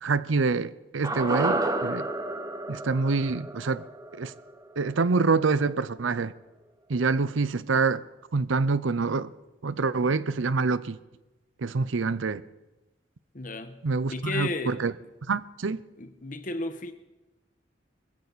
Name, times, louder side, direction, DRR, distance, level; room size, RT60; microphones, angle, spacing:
voice 1, 0.0-2.1 2.7-3.8 4.1-4.3 4.8-6.3 6.9-8.0 8.3-9.3 9.6-11.0 11.6-12.4 13.8-14.9 15.3-15.8, right 4 dB, 80° right, 0.6 m, -26 dB
sound 1, 1.0-5.3 5.6-5.7, right 2 dB, 15° right, 0.9 m, -31 dB
voice 2, 13.3-13.8 14.1-14.8 16.0-16.9, left 2 dB, 40° left, 1.1 m, -33 dB
21.0 x 15.5 x 4.1 m
head